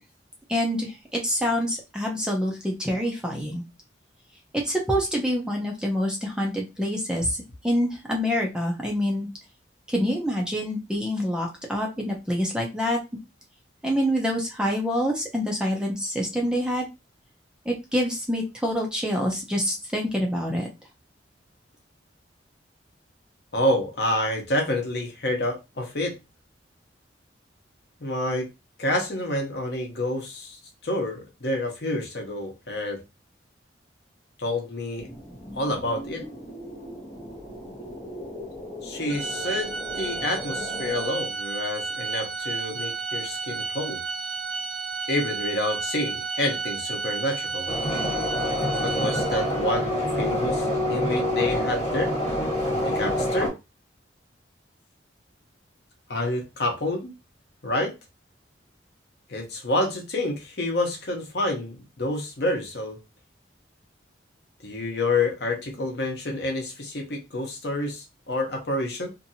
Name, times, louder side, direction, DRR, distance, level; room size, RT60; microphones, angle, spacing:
voice 1, 0.5-3.6 4.5-7.4 7.6-9.3 9.9-13.0 13.8-16.9 17.7-20.7, equal, 5° right, 0.5 m, -26 dB
voice 2, 23.5-26.2 28.0-28.5 28.8-33.0 34.4-35.1 35.6-36.2 38.8-39.7 40.0-44.0 45.1-47.7 48.8-52.1 52.8-53.5 56.1-57.1 57.6-57.9 59.3-63.0 64.6-69.1, left 1 dB, 60° left, 0.8 m, -28 dB
sound 1, 35.0-41.1, left 1 dB, 20° left, 0.9 m, -39 dB
Organ, 39.1-49.7, right 4 dB, 75° right, 0.5 m, -32 dB
sound 2, 47.7-53.5, left 1 dB, 35° left, 1.5 m, -26 dB
2.6 x 2.5 x 2.7 m
head